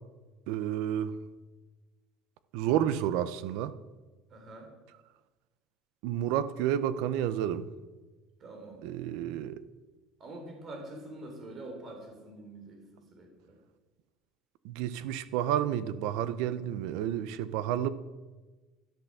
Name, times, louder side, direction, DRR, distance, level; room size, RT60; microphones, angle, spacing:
voice 1, 0.5-1.2 2.5-3.7 6.0-7.6 8.8-9.6 14.6-17.9, right 11 dB, 65° right, 0.8 m, -30 dB
voice 2, 4.3-4.7 8.4-8.9 10.2-13.6, right 2 dB, 30° right, 3.5 m, -45 dB
12.0 x 11.5 x 6.6 m
cardioid pair, 170°, 0 cm